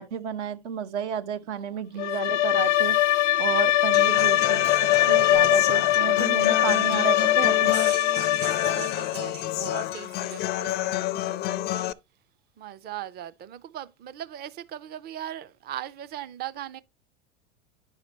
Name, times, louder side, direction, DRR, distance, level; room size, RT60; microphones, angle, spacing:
voice 1, 0.0-3.0 3.4-4.7 5.1-7.7, right 8 dB, 75° right, 0.9 m, -31 dB
voice 2, 1.6-2.2 2.8-3.3 8.2-12.0 12.6-16.8, right 11 dB, 30° right, 0.5 m, -40 dB
Bowed string instrument, 2.0-9.1, left 14 dB, 90° left, 0.5 m, -22 dB
Human voice / Acoustic guitar, 3.9-11.9, left 14 dB, 30° left, 0.4 m, -30 dB
sound 1, 7.4-10.5, right 10 dB, 60° right, 3.4 m, -42 dB
9.9 x 5.8 x 2.8 m
hypercardioid pair, 95°, 35 cm